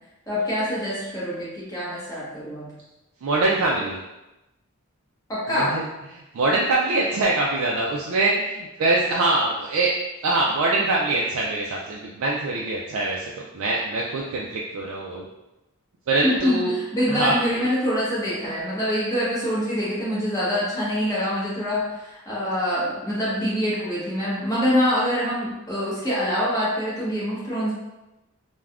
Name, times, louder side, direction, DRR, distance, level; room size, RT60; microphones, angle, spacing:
voice 1, 0.3-2.7 5.3-5.8 16.2-27.7, equal, 15° left, -9 dB, 0.9 m, -25 dB
voice 2, 3.2-4.0 5.5-5.9 6.1-9.9 10.2-13.3 13.5-15.3 16.1-16.7 17.1-17.3, right 2 dB, 70° right, -3 dB, 0.3 m, -23 dB
3.4 x 2.1 x 2.4 m, 1.0 s
head